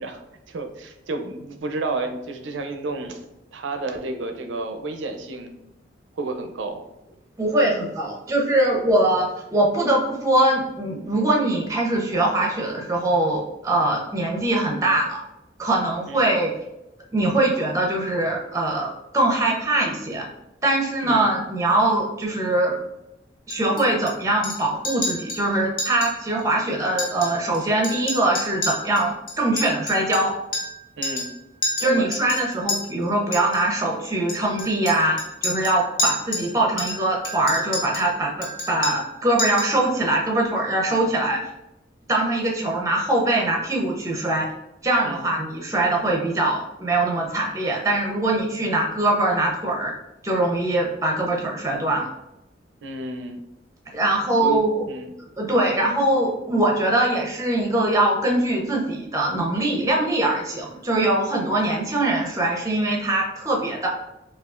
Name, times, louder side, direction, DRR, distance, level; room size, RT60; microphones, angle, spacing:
voice 1, 0.5-3.3 3.5-5.5 6.1-6.8 16.1-16.3 21.1-21.3 31.0-31.3 31.8-32.1 40.9-41.0 45.0-45.3 52.8-53.4 54.4-55.1, right 2 dB, 90° right, 6 dB, 0.5 m, -31 dB
voice 2, 7.4-15.2 15.6-16.5 17.1-20.3 20.6-22.8 23.5-30.3 31.8-41.4 42.1-44.5 44.8-49.9 50.2-52.1 53.9-54.8 55.4-63.9, right 1 dB, 15° right, -1 dB, 0.7 m, -22 dB
Chink clink, 23.5-24.1 24.4-24.6 24.8-25.4 25.8-26.1 26.4-26.5 26.9-27.6 27.8-30.8 31.0-31.3 31.6-32.8 33.3-33.6 34.3-36.5 36.8-38.1 38.4-39.1 39.4-39.8, left 1 dB, 50° left, 0.9 m, -29 dB
5.0 x 2.4 x 2.4 m, 0.90 s
head